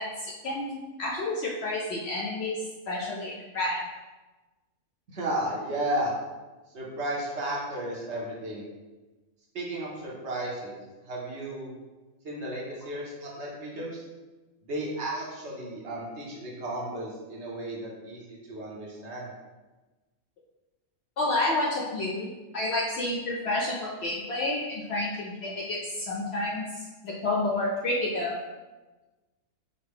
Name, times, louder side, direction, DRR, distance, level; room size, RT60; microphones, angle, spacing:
voice 1, 0.0-2.6 2.9-3.8 21.2-28.4, left 2 dB, 65° left, -2 dB, 0.7 m, -30 dB
voice 2, 5.1-6.1 6.7-8.7 9.5-11.7 12.2-14.1 14.6-19.3, right 1 dB, 55° right, -4 dB, 1.1 m, -34 dB
5.1 x 2.2 x 3.5 m, 1.2 s
omnidirectional pair, 1.5 m